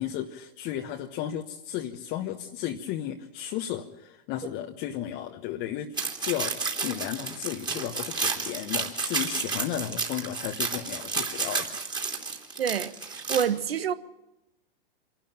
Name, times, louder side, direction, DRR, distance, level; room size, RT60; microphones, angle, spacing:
voice 1, 0.0-5.9 6.2-12.1, left 11 dB, 40° left, 1.3 m, -34 dB
sound 1, 6.0-13.4, right 4 dB, 15° right, 3.1 m, -31 dB
voice 2, 12.6-13.9, right 8 dB, 85° right, 1.5 m, -28 dB
25.5 x 12.0 x 9.1 m
hypercardioid pair, 120°, 29 cm